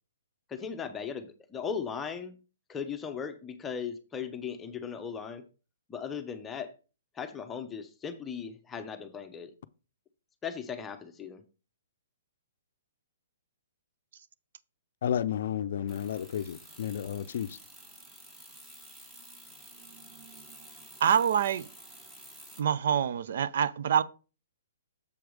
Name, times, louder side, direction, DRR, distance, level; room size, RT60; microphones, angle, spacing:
voice 1, 0.5-2.3 2.7-5.4 5.9-6.7 7.2-9.5 10.4-11.4, left 6 dB, 15° left, 0.7 m, -37 dB
voice 2, 15.0-17.6, left 9 dB, 60° left, 0.5 m, -32 dB
sound 1, 15.9-22.6, right 1 dB, 10° right, 1.3 m, -51 dB
voice 3, 21.0-21.7 22.6-24.0, right 8 dB, 60° right, 0.5 m, -25 dB
7.1 x 4.6 x 5.1 m
hypercardioid pair, 150°, 0 cm